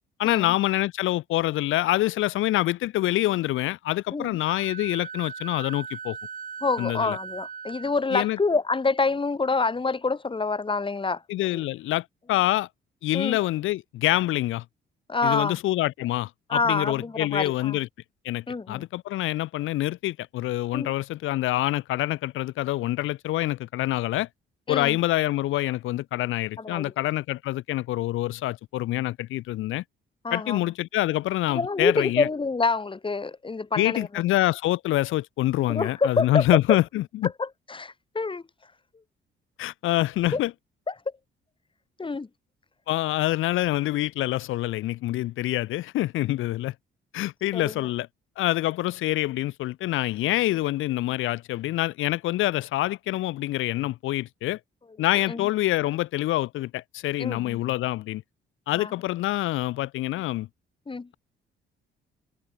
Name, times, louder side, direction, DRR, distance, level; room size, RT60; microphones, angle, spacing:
voice 1, 0.2-6.2 6.8-7.2 8.1-8.4 11.3-12.7 13.0-14.6 15.2-17.9 18.2-24.3 24.7-29.8 30.3-32.3 33.8-37.3 39.6-40.5 42.9-46.7 47.1-48.1 48.4-54.6 55.0-58.2 58.7-60.5, left 16 dB, 85° left, 1.1 m, -26 dB
Wind instrument woodwind instrument, 4.4-8.0, right 6 dB, 40° right, 6.3 m, -39 dB
voice 2, 6.6-11.2 11.5-11.6 13.1-13.4 15.1-15.6 16.5-17.8 18.5-18.8 20.7-20.9 24.7-25.0 26.6-26.9 30.2-30.6 31.5-34.2 35.7-36.4 36.7-36.8 37.4-38.4 40.3-40.4 40.9-41.0 42.0-42.3 47.5-47.7 55.3-55.5 57.2-57.6 58.8-58.9 60.9-61.1, left 4 dB, 25° left, 3.0 m, -27 dB
cardioid pair, 90°, 20 cm